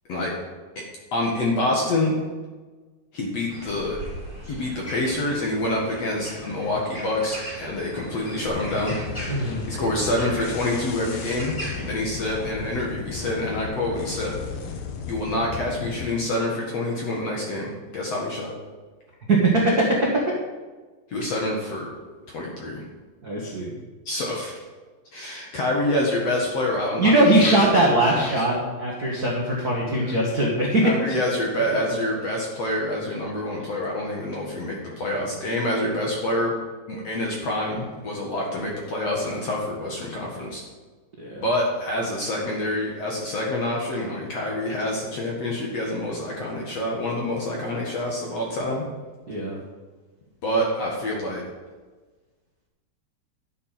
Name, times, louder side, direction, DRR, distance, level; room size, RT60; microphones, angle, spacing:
voice 1, 1.1-2.1 3.1-4.0 4.5-9.0 9.7-14.4 15.0-18.5 21.1-21.9 22.3-22.8 24.1-24.5 25.1-28.4 30.8-36.5 36.9-40.6 41.4-48.8 50.4-51.4, left 1 dB, 50° left, -2 dB, 2.2 m, -27 dB
sound 1, 3.5-11.9, right 1 dB, 15° left, 2.5 m, -39 dB
sound 2, 8.5-16.1, left 6 dB, 70° left, 2.8 m, -34 dB
voice 2, 9.3-9.6 19.3-20.2 23.2-23.7 27.0-30.9 31.9-32.1 41.2-41.5 49.3-49.6, right 1 dB, 45° right, -4 dB, 1.2 m, -21 dB
12.0 x 7.3 x 5.9 m, 1.3 s
omnidirectional pair, 4.8 m